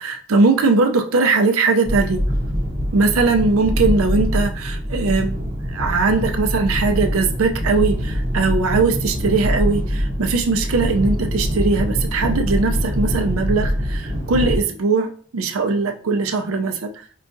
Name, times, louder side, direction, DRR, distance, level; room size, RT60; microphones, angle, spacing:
voice 1, 0.0-2.2 2.9-16.9, right 3 dB, 70° right, 5 dB, 0.5 m, -20 dB
sound 1, 1.8-14.6, equal, 25° right, 0.6 m, -23 dB
4.7 x 2.3 x 2.6 m, 0.43 s
head